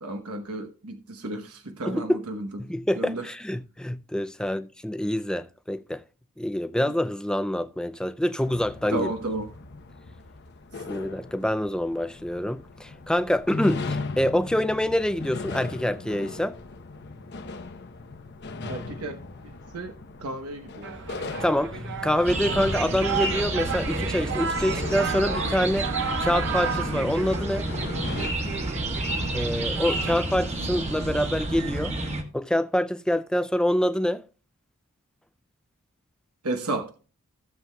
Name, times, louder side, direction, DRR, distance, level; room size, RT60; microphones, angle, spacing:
voice 1, 0.0-2.5 3.0-3.2 8.9-9.5 18.6-19.2 19.7-19.9 20.2-20.9 36.4-36.9, right 2 dB, 85° right, 1.0 m, -32 dB
voice 2, 1.9-2.3 2.6-6.0 6.4-9.1 10.9-16.6 21.4-25.9 26.2-27.7 29.3-31.9 32.3-34.2, left 1 dB, 5° left, 0.3 m, -26 dB
sound 1, 8.4-28.3, left 3 dB, 50° left, 0.8 m, -38 dB
sound 2, 20.8-30.2, right 6 dB, 55° right, 0.7 m, -33 dB
sound 3, 22.2-32.2, right 1 dB, 30° right, 1.4 m, -30 dB
15.5 x 7.4 x 2.3 m
head